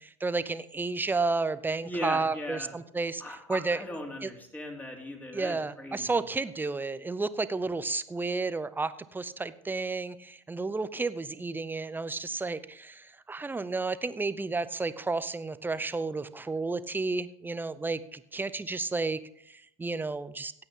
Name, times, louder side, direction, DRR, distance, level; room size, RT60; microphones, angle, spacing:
voice 1, 0.0-3.2 3.5-3.8 4.2-4.3 5.3-19.2 19.8-20.5, right 3 dB, 10° right, 15 dB, 0.7 m, -31 dB
voice 2, 1.8-2.7 3.2-6.2, left 1 dB, 10° left, 1 dB, 3.2 m, -38 dB
15.5 x 8.9 x 3.8 m, 0.71 s
hypercardioid pair, 80°, 17 cm